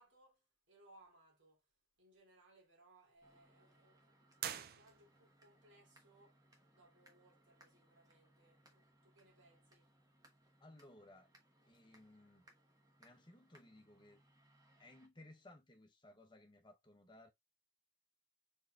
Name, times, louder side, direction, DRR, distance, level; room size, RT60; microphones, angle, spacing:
voice 1, 0.0-1.7 2.0-6.4 6.7-9.9, right 1 dB, 90° right, 2.5 m, -68 dB
sound 1, 3.2-15.1, right 1 dB, 20° right, 1.1 m, -70 dB
sound 2, 4.4-5.4, right 10 dB, 50° right, 0.4 m, -45 dB
voice 2, 10.6-11.3 11.7-12.5 13.0-14.2 14.8-17.3, left 1 dB, 25° left, 0.8 m, -60 dB
4.6 x 4.4 x 2.3 m
head